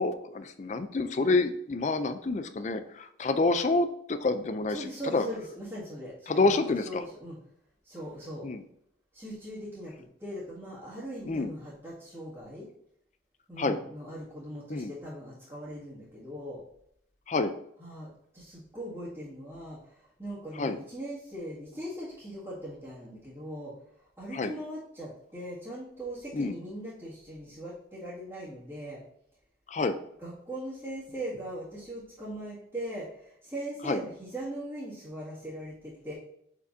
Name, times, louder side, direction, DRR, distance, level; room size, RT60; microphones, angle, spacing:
voice 1, 0.0-4.9 5.1-5.2 6.3-7.0 8.4-8.6 11.3-11.5 13.6-13.8 14.7-14.9 17.3-17.5 20.6-20.8 24.3-24.5 26.3-26.5 29.7-29.9 33.9-34.0, left 3 dB, 40° left, 10 dB, 0.4 m, -28 dB
voice 2, 4.7-7.4 7.8-8.5 9.1-12.7 13.5-16.6 17.8-23.7 24.0-29.0 30.2-36.1, right 1 dB, 15° right, -12 dB, 2.0 m, -40 dB
6.7 x 5.2 x 2.7 m, 0.72 s
head